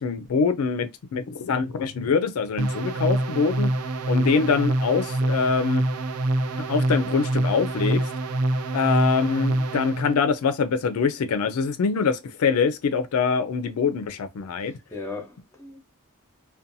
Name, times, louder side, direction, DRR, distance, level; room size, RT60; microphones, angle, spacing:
voice 1, 0.0-3.7 4.1-5.8 6.6-8.0 8.7-14.7, left 5 dB, 70° left, 0.4 m, -24 dB
sound 1, 2.6-10.1, right 1 dB, 70° right, 0.4 m, -25 dB
voice 2, 14.7-15.8, left 3 dB, 15° left, 0.7 m, -37 dB
2.6 x 2.2 x 2.5 m
head